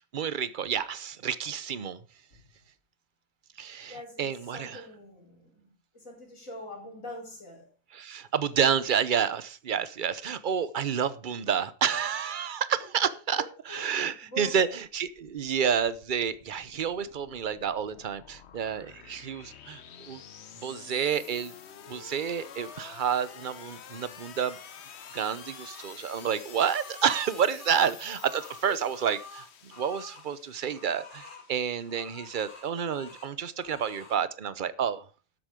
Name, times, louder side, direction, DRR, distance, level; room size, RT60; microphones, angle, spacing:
voice 1, 0.1-2.0 3.6-4.9 7.9-20.2 20.6-21.5 21.9-24.6 25.1-35.1, right 7 dB, 45° right, 0.8 m, -29 dB
voice 2, 3.9-7.7 13.0-14.7 28.7-28.8, left 1 dB, 85° left, 5.0 m, -44 dB
sound 1, 14.7-33.3, left 8 dB, 60° left, 1.1 m, -49 dB
sound 2, 22.1-22.9 24.3-25.9 26.4-30.3 30.6-31.5 31.9-33.3 33.6-34.2, left 3 dB, 40° left, 2.1 m, -49 dB
12.5 x 8.3 x 5.1 m
omnidirectional pair, 1.4 m